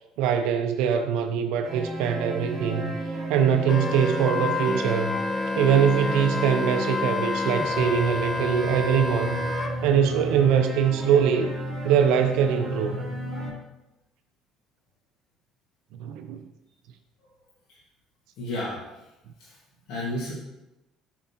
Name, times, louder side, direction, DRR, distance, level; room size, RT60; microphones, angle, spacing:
voice 1, 0.2-2.9 3.3-5.2 5.6-9.4 9.8-11.5 11.8-13.0 16.0-16.4, right 8 dB, 85° right, 7 dB, 0.4 m, -23 dB
sound 1, 1.6-13.5, equal, 20° right, 1.5 m, -32 dB
Wind instrument woodwind instrument, 3.7-9.7, left 3 dB, 20° left, 0.6 m, -30 dB
voice 2, 18.4-18.8 19.4-19.5 19.9-20.4, left 1 dB, 80° left, -6 dB, 1.5 m, -31 dB
7.0 x 5.3 x 2.8 m, 0.96 s
cardioid pair, 120°, 0 cm